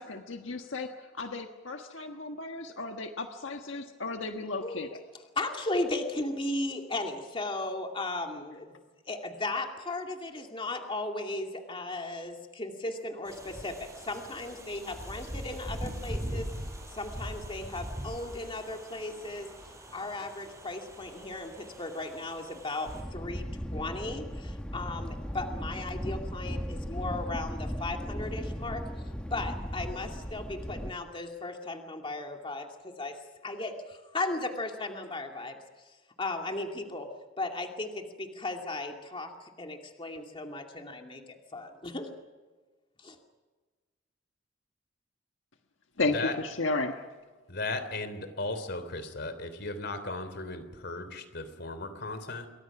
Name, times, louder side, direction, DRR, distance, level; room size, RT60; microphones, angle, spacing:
voice 1, 0.0-4.9 46.0-47.0, left 3 dB, 75° left, 4 dB, 1.5 m, -34 dB
voice 2, 5.3-8.7 9.1-16.5 16.9-19.5 19.9-23.4 23.7-28.8 29.3-33.2 33.4-35.6 36.2-37.1 37.4-42.1 43.0-43.2, left 2 dB, 25° left, 3 dB, 2.4 m, -36 dB
sound 1, 13.3-23.0, equal, 15° right, 5.5 m, -41 dB
Thunder, 22.9-30.9, equal, 5° left, 1.3 m, -37 dB
voice 3, 46.0-46.4 47.5-52.5, left 2 dB, 60° left, 10 dB, 3.4 m, -36 dB
28.0 x 23.5 x 6.1 m, 1.3 s
head